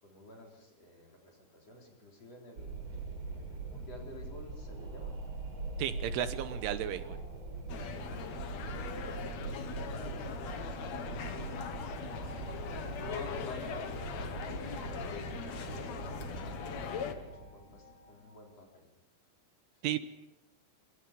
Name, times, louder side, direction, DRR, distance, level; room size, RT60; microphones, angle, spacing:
voice 1, 0.0-2.7 3.3-5.2 7.7-11.4 11.9-12.7 13.0-16.6 17.1-18.9 19.7-19.9, left 1 dB, 35° left, 0 dB, 4.9 m, -51 dB
Wind, 2.6-17.9, right 3 dB, 30° right, 4.3 m, -42 dB
voice 2, 5.8-7.2 19.8-20.0, right 11 dB, 80° right, 10 dB, 3.5 m, -34 dB
sound 1, 7.7-17.1, left 7 dB, 80° left, 1.5 m, -41 dB
sound 2, 11.7-18.4, left 1 dB, 15° left, 2.8 m, -58 dB
26.5 x 25.0 x 5.3 m, 0.96 s
omnidirectional pair, 5.5 m